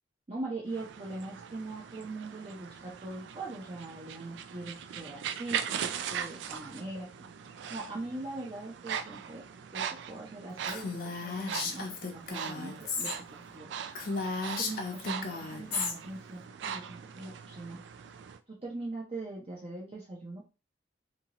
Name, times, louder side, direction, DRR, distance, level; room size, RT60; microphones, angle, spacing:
voice 1, 0.3-7.1 7.7-9.4 9.7-13.1 13.5-13.7 14.6-17.8 18.5-20.5, right 2 dB, 35° right, -4 dB, 0.6 m, -41 dB
sound 1, 0.7-18.4, right 8 dB, 75° right, 0.3 m, -40 dB
Female speech woman speaking, 10.7-13.2 13.5-13.6 13.9-15.9, left 4 dB, 55° left, 0.6 m, -35 dB
2.7 x 2.7 x 2.9 m, 0.31 s
head